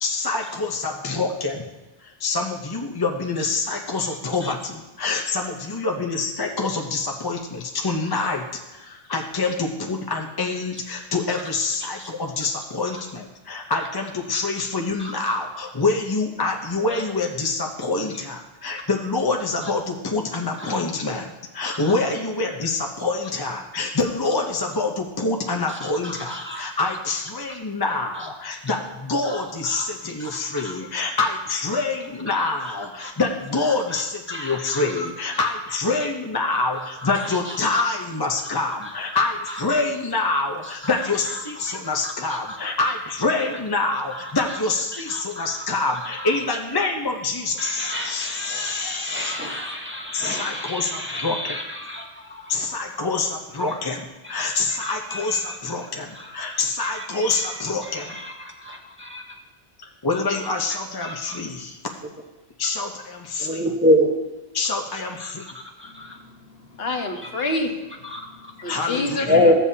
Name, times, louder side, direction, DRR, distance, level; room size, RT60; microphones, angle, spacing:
voice 1, 0.0-1.6 2.0-21.3 21.5-49.4 50.1-51.6 52.5-58.1 60.0-61.8 62.6-63.6 64.5-65.5 68.6-69.2, left 3 dB, 25° left, 1 dB, 0.6 m, -26 dB
voice 2, 25.7-26.6 27.5-27.6 27.9-28.3 29.2-29.9 30.2-30.8 32.3-33.1 33.9-34.0 34.3-35.1 35.4-35.5 36.5-37.8 38.4-39.2 39.5-39.8 40.6-40.9 41.3-41.4 41.6-42.6 44.1-44.3 44.9-45.5 46.2-46.3 47.6-52.7 53.7-53.8 54.2-54.4 54.7-55.6 56.1-56.3 56.8-59.2 60.3-60.4 61.0-61.4 63.4-64.1 65.2-65.5 65.8-66.2 68.0-68.2 69.3-69.5, left 1 dB, 10° right, 0 dB, 0.9 m, -28 dB
voice 3, 65.8-67.7 68.1-69.5, left 2 dB, 65° left, 3 dB, 1.3 m, -29 dB
14.5 x 7.3 x 2.8 m, 1.1 s
omnidirectional pair, 1.1 m